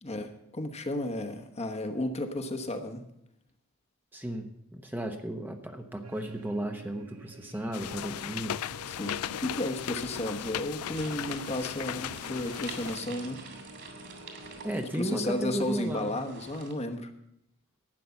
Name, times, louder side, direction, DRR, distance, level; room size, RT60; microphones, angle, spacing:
voice 1, 0.0-3.0 8.9-13.4 14.8-17.1, left 1 dB, 30° left, 6 dB, 1.1 m, -33 dB
voice 2, 4.1-8.6 14.6-16.1, right 1 dB, 10° right, 4 dB, 0.8 m, -34 dB
sound 1, 6.0-14.8, right 3 dB, 80° right, 1.2 m, -49 dB
sound 2, 7.7-13.0, left 11 dB, 80° left, 0.4 m, -37 dB
sound 3, 10.9-16.7, right 4 dB, 55° right, 2.9 m, -47 dB
12.0 x 9.2 x 7.0 m, 0.81 s
head